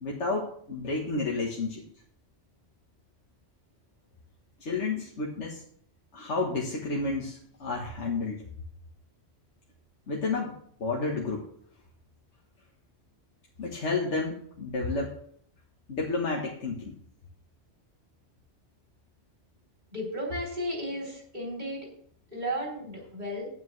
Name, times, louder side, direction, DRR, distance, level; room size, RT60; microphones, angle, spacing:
voice 1, 0.0-1.8 4.6-5.6 6.1-8.4 10.1-10.5 10.8-11.5 13.6-15.1 15.9-16.9, left 3 dB, 90° left, -2 dB, 1.6 m, -31 dB
voice 2, 19.9-21.9 22.3-23.5, equal, 40° right, -2 dB, 3.5 m, -34 dB
12.0 x 9.4 x 3.2 m, 0.62 s
omnidirectional pair, 1.2 m